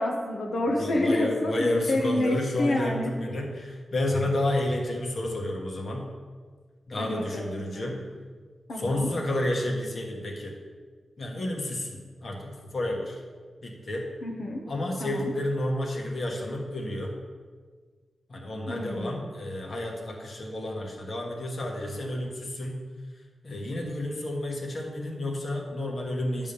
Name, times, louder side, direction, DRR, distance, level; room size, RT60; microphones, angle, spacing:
voice 1, 0.0-3.1 7.0-8.0 8.7-9.1 14.2-14.6 15.0-15.3 18.7-19.2, left 1 dB, 80° left, -1 dB, 1.1 m, -28 dB
voice 2, 0.6-6.0 6.9-8.0 8.7-10.5 11.2-13.2 13.6-14.0 14.7-17.1 18.3-22.8 23.4-26.5, left 1 dB, 50° left, 0 dB, 1.4 m, -30 dB
10.0 x 3.6 x 6.9 m, 1.5 s
wide cardioid pair, 120°, 0 cm